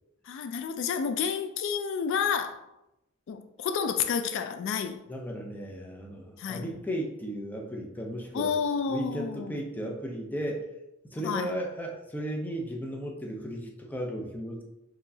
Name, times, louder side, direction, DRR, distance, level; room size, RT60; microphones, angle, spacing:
voice 1, 0.2-2.7 3.3-5.0 6.4-6.7 8.3-9.6 11.2-11.5, left 6 dB, 65° left, 8 dB, 0.3 m, -30 dB
voice 2, 5.1-8.5 8.9-10.6 11.1-14.6, right 1 dB, 10° left, 0 dB, 0.5 m, -35 dB
4.5 x 3.1 x 2.7 m, 0.89 s
head